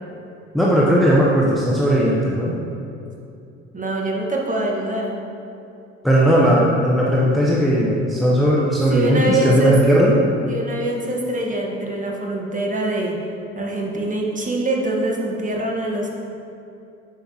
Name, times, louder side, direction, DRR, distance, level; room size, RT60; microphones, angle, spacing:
voice 1, 0.5-2.6 6.0-10.2, equal, ahead, -5 dB, 0.9 m, -17 dB
voice 2, 3.7-5.1 8.9-9.7 10.5-13.2 13.5-16.1, right 1 dB, 20° right, -1 dB, 1.5 m, -24 dB
9.8 x 5.7 x 3.0 m, 2.6 s
hypercardioid pair, 60°, 37 cm